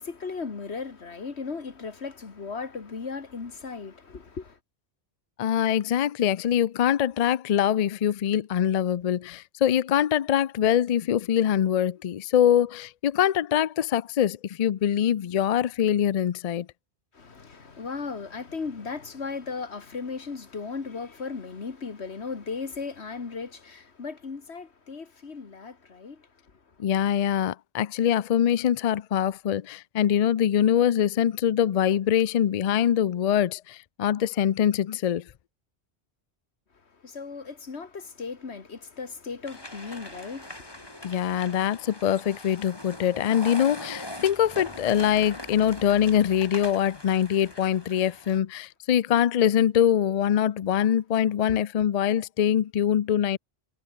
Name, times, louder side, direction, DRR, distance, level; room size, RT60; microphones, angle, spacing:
voice 1, 0.0-4.6 17.1-26.6 36.9-41.6 42.3-42.4 42.9-43.0 43.2-43.3 51.5-51.6, left 4 dB, 85° left, 2.1 m, -37 dB
voice 2, 5.4-16.7 26.8-35.2 41.0-53.4, left 10 dB, 50° left, 0.5 m, -23 dB
sound 1, 39.4-48.4, left 1 dB, 20° left, 3.1 m, -41 dB
omnidirectional pair, 1.1 m